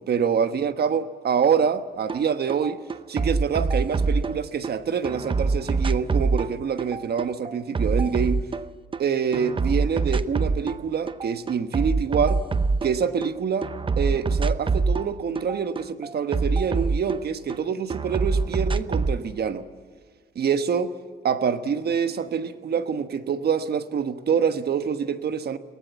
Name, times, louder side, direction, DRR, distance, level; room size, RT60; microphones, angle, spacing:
voice 1, 0.0-2.8 3.1-8.4 9.0-12.4 12.8-13.7 14.0-19.7 20.3-20.9 21.2-25.6, right 7 dB, 55° right, 1.3 m, -26 dB
sound 1, 2.1-2.2 2.5-4.7 5.0-9.0 9.3-10.8 11.1-13.3 13.6-17.6 17.9-19.2, right 4 dB, 25° right, 0.7 m, -25 dB
23.0 x 18.5 x 8.3 m
cardioid pair, 90°, 20 cm